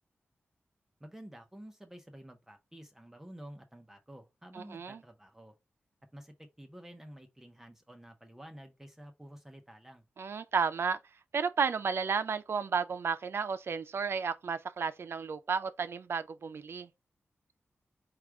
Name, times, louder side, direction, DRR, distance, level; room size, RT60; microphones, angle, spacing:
voice 1, 1.0-5.5 6.1-10.0, right 1 dB, 10° right, 0.7 m, -51 dB
voice 2, 4.5-5.0 10.2-11.0 11.3-16.9, right 5 dB, 65° right, 0.4 m, -32 dB
4.8 x 2.4 x 4.5 m
wide cardioid pair, 135°, 4 cm